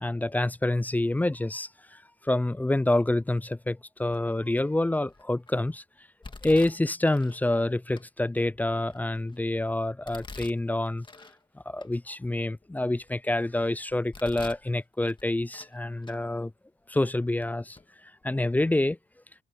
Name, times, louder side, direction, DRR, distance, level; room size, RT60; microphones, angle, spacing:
voice 1, 0.0-5.8 6.4-11.1 11.7-16.5 16.9-17.8 18.2-19.0, left 1 dB, 10° left, 0.3 m, -27 dB
Domestic sounds home sounds, 4.1-4.5 5.1-5.5 6.2-7.4 8.0-8.1 8.6-9.4 10.0-11.4 11.8-11.9 12.5-13.4 13.9-14.7 15.0-15.8 16.0-16.2 17.0-17.1 17.7-17.9 18.2-18.4, left 3 dB, 25° left, 2.2 m, -47 dB
cardioid pair, 85°, 19 cm